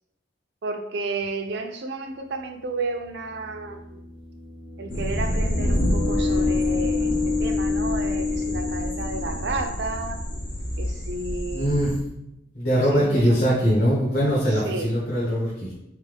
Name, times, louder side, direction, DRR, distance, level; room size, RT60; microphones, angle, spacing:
voice 1, 0.6-4.1 4.8-10.2 10.8-11.7 12.7-13.6 14.5-14.9, right 3 dB, 60° right, 6 dB, 0.4 m, -32 dB
sound 1, 1.3-1.4 2.8-9.7, left 4 dB, 25° left, 0.4 m, -28 dB
sound 2, 4.9-12.0, equal, 85° left, 1.5 m, -28 dB
voice 2, 11.5-11.9 12.5-15.7, equal, 55° left, -7 dB, 0.9 m, -22 dB
3.6 x 3.3 x 3.3 m, 0.85 s
head